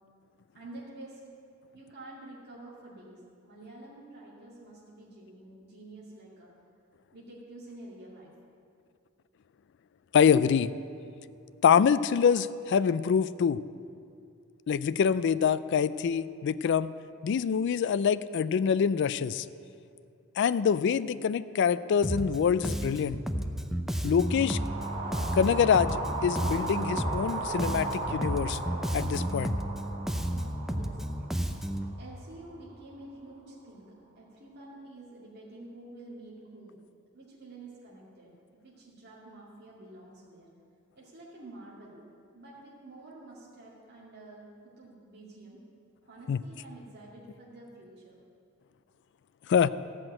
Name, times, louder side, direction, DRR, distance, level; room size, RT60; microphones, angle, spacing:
voice 1, 0.5-1.2 1.7-6.5 7.1-8.3 30.1-31.0 32.0-36.8 37.1-40.5 40.9-42.0 42.3-45.6 46.0-48.2, right 2 dB, 50° right, -6 dB, 2.3 m, -49 dB
voice 2, 10.1-10.7 11.6-13.6 14.7-16.9 17.2-19.5 20.4-23.2 24.0-24.6 25.4-28.6 28.9-29.6 46.3-46.4 49.5-49.7, left 7 dB, 55° left, 14 dB, 0.3 m, -25 dB
Bass guitar, 22.0-22.4 22.6-27.3 27.6-31.9, equal, ahead, 0.5 m, -32 dB
sound 1, 24.1-32.3, right 2 dB, 25° right, 3.8 m, -37 dB
14.0 x 6.1 x 8.9 m, 2.4 s
head